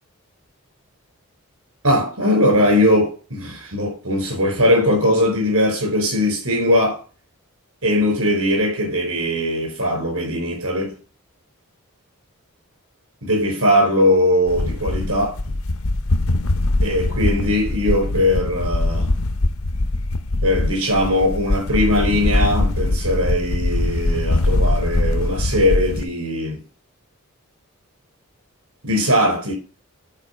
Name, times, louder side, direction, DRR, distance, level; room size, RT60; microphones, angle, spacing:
voice 1, 1.8-7.0 7.8-10.9 13.2-15.4 16.8-19.1 20.4-26.6 28.8-29.5, left 1 dB, 85° right, 4.6 m, -20 dB
sound 1, 14.5-26.0, left 2 dB, 75° left, 0.7 m, -22 dB
9.8 x 4.6 x 5.2 m
head